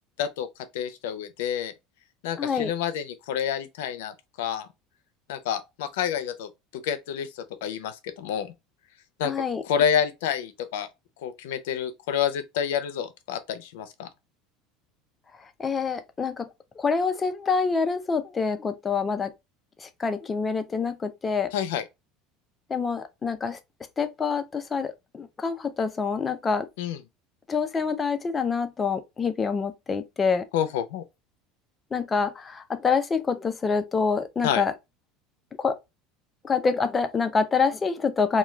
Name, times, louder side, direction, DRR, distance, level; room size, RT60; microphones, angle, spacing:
voice 1, 0.7-1.7 2.2-4.1 4.4-4.7 5.3-8.5 9.2-9.3 9.6-10.9 11.2-14.1 21.5-21.8 26.8-27.0 30.5-31.0 34.4-34.6, left 9 dB, 90° left, 0.5 m, -28 dB
voice 2, 2.4-2.7 9.2-9.6 15.6-16.5 16.8-19.3 19.8-21.5 22.7-23.6 24.0-26.7 27.5-30.4 31.9-34.7 35.6-35.8 36.4-38.4, left 5 dB, 20° left, 0.4 m, -26 dB
2.3 x 2.2 x 3.0 m
supercardioid pair, 135°, 0 cm